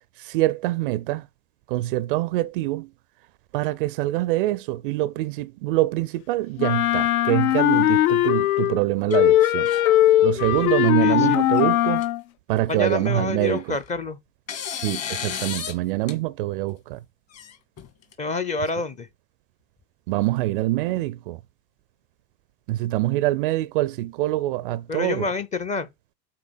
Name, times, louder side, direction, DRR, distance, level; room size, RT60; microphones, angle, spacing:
voice 1, 0.2-1.2 1.7-2.9 3.5-9.7 10.2-12.0 12.5-13.8 14.8-17.0 20.1-21.4 22.7-25.3, right 17 dB, 35° right, 0.4 m, -25 dB
Wind instrument woodwind instrument, 6.6-8.8 9.1-12.2, left 13 dB, 65° left, 0.5 m, -19 dB
sound 1, 9.1-9.8 10.2-10.7 11.5-11.6 12.0-12.1 13.4-14.0 14.5-15.8 16.1-16.2 17.3-18.1, left 8 dB, 30° left, 1.9 m, -34 dB
voice 2, 11.0-11.4 12.7-14.2 18.2-19.1 24.9-25.9, left 3 dB, 15° left, 0.6 m, -28 dB
8.5 x 3.8 x 6.2 m
figure-of-eight pair, 85°, 47 cm